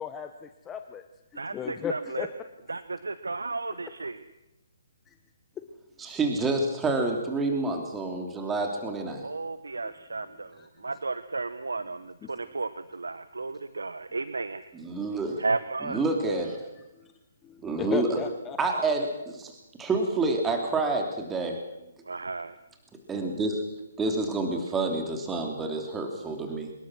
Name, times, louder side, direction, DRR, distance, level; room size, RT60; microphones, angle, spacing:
voice 1, 0.0-1.0 1.5-2.3 5.1-5.2 5.6-5.7 9.8-9.9 10.6-10.7 12.2-12.3 17.4-19.1, left 7 dB, 15° left, 8 dB, 1.1 m, -36 dB
voice 2, 1.4-2.3 2.7-4.2 9.2-10.5 10.8-14.6 15.4-16.0 22.1-22.5, right 3 dB, 75° right, 14 dB, 1.0 m, -33 dB
voice 3, 6.0-9.2 14.7-15.4 15.8-16.7 17.6-18.2 18.6-21.6 23.1-23.6 24.0-26.7, right 3 dB, 10° right, 3 dB, 3.1 m, -28 dB
25.0 x 21.0 x 6.3 m, 0.94 s
figure-of-eight pair, 135°, 0 cm